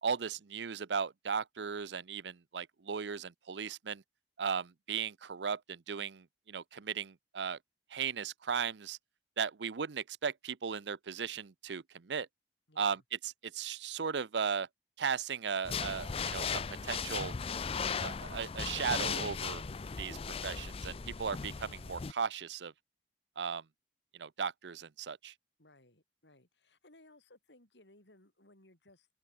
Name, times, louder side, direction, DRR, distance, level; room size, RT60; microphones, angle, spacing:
voice 1, 0.0-4.0 4.4-7.6 7.9-9.0 9.4-12.3 12.8-14.7 15.0-17.3 18.0-19.6 20.0-22.7 23.4-23.6 24.1-25.3, right 6 dB, 80° right, 0.6 m, -36 dB
voice 2, 12.7-13.0 25.6-29.1, left 1 dB, 90° left, 5.9 m, -62 dB
Haus betreten, 15.7-22.1, left 6 dB, 35° left, 0.5 m, -37 dB
open air
head